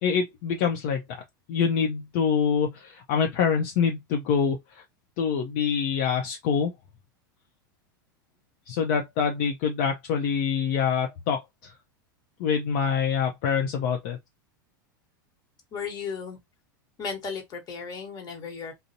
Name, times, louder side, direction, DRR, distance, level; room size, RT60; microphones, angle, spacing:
voice 1, 0.0-1.2 1.5-4.8 5.2-6.7 8.7-11.7 12.4-14.2, left 6 dB, 60° left, 0.6 m, -25 dB
voice 2, 15.7-16.4 17.0-18.7, left 5 dB, 35° left, 1.2 m, -35 dB
2.5 x 2.0 x 2.7 m
hypercardioid pair, 100°, 11 cm